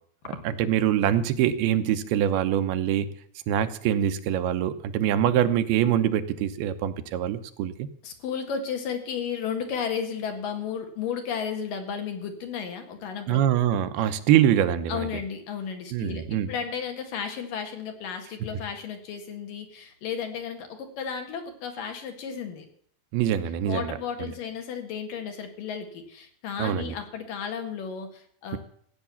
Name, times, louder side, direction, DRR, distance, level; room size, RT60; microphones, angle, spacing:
voice 1, 0.4-3.1 3.5-7.9 13.3-15.1 15.9-16.5 23.1-24.3 26.6-26.9, right 10 dB, 85° right, 10 dB, 2.7 m, -24 dB
voice 2, 8.0-13.4 14.0-14.1 14.9-22.7 23.7-28.6, left 7 dB, 65° left, 5 dB, 3.3 m, -33 dB
15.5 x 8.9 x 7.0 m, 0.62 s
omnidirectional pair, 4.4 m